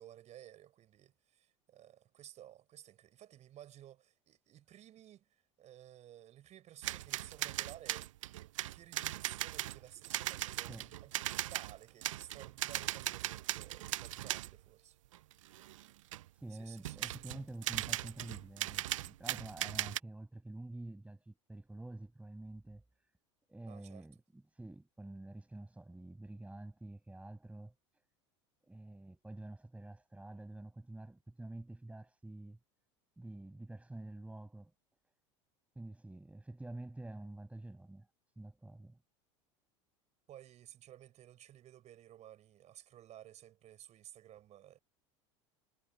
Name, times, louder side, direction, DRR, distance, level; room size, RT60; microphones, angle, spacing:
voice 1, 0.0-8.1 8.7-10.7 11.0-15.0 16.5-17.3 23.7-24.0 40.3-44.8, right 12 dB, 45° right, 5.6 m, -55 dB
sound 1, 6.8-14.6 15.1-16.3 16.8-20.0, right 15 dB, 85° right, 0.5 m, -39 dB
voice 2, 16.3-22.8 23.5-27.7 28.6-32.6 33.2-34.7 35.7-38.1 38.4-39.0, right 2 dB, 10° right, 6.6 m, -48 dB
hypercardioid pair, 85°, 16 cm